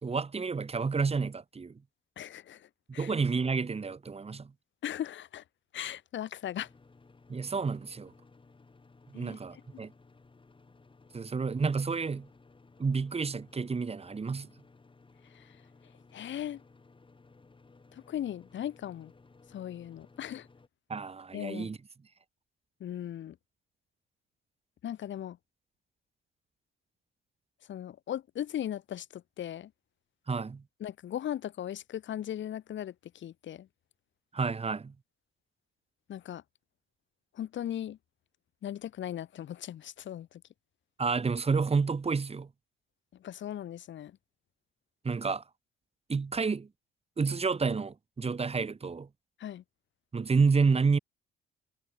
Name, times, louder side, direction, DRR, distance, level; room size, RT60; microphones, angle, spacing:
voice 1, 0.0-1.8 3.0-4.5 7.3-8.1 9.1-9.9 11.1-12.3 12.8-14.5 20.9-21.8 30.3-30.6 34.3-34.9 41.0-42.5 45.0-45.4 46.1-46.7 47.2-49.1 50.1-51.0, right 4 dB, 30° right, 2.3 m, -29 dB
voice 2, 2.2-3.1 4.8-5.4 5.7-6.7 9.1-9.4 9.7-9.8 15.3-15.6 16.1-16.6 17.9-19.1 19.5-20.5 21.3-21.7 22.8-23.4 24.8-25.4 27.7-29.7 30.8-33.7 36.1-36.4 37.3-38.0 38.6-40.4 43.2-44.2 49.4-49.6, left 11 dB, 70° left, 4.2 m, -38 dB
sound 1, 6.6-20.7, left 3 dB, 25° left, 7.9 m, -59 dB
cardioid pair, 90°, 20 cm